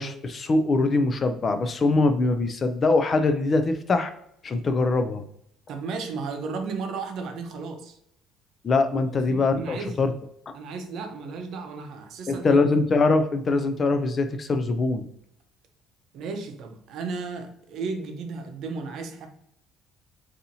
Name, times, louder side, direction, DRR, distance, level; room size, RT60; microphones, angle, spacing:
voice 1, 0.0-4.1 4.4-5.2 8.6-10.1 12.3-15.1, left 3 dB, 30° left, 0.4 m, -23 dB
voice 2, 5.7-8.0 9.2-10.0 10.5-12.6 16.1-19.3, right 4 dB, 60° right, 0.6 m, -34 dB
4.0 x 2.7 x 2.7 m
cardioid pair, 135°, 0 cm